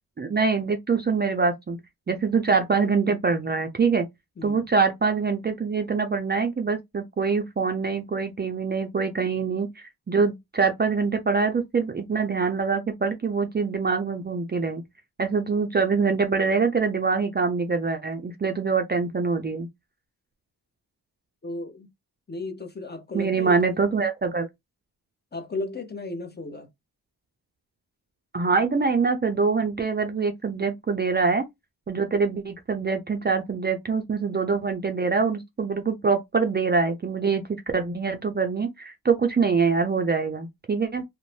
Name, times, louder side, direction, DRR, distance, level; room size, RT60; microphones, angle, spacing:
voice 1, 0.2-1.8 2.1-4.0 4.4-14.8 15.2-19.7 23.1-24.5 28.3-31.4 31.9-37.4 37.7-41.0, right 4 dB, 30° right, 0.4 m, -24 dB
voice 2, 21.4-21.9 22.3-23.8 25.3-26.7, left 2 dB, 25° left, 0.7 m, -34 dB
2.6 x 2.1 x 3.1 m
wide cardioid pair, 105°, 37 cm